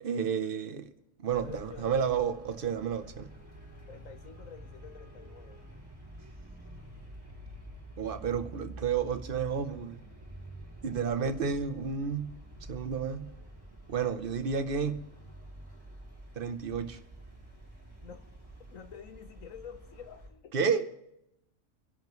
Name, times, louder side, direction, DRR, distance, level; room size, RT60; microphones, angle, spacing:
voice 1, 0.0-0.9 1.2-3.3 8.0-10.0 10.8-12.3 12.7-13.3 13.9-15.0 16.4-17.0 20.5-20.9, right 6 dB, 50° right, 10 dB, 0.9 m, -31 dB
Traffic noise roadway noise, 1.3-20.3, right 1 dB, 15° right, 2.7 m, -48 dB
voice 2, 1.4-2.0 3.9-5.6 18.0-18.3 18.7-20.6, left 7 dB, 75° left, 8 dB, 1.5 m, -48 dB
27.0 x 11.0 x 3.1 m, 0.84 s
omnidirectional pair, 1.4 m